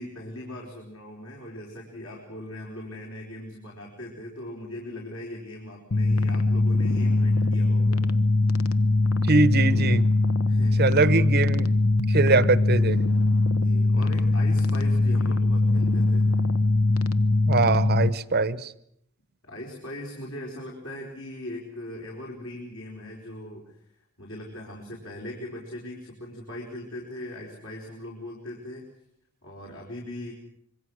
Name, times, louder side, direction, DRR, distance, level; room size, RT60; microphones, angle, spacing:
voice 1, 0.0-8.0 10.5-11.2 13.5-16.3 19.4-23.8 24.2-28.9 29.4-30.3, left 1 dB, 70° left, -1 dB, 4.8 m, -40 dB
sound 1, 5.9-18.1, left 2 dB, 85° left, 1.1 m, -22 dB
voice 2, 9.3-10.1 10.8-11.8 12.1-13.0 17.5-18.7, right 3 dB, 50° right, 16 dB, 1.0 m, -22 dB
26.0 x 23.0 x 6.5 m, 0.72 s
head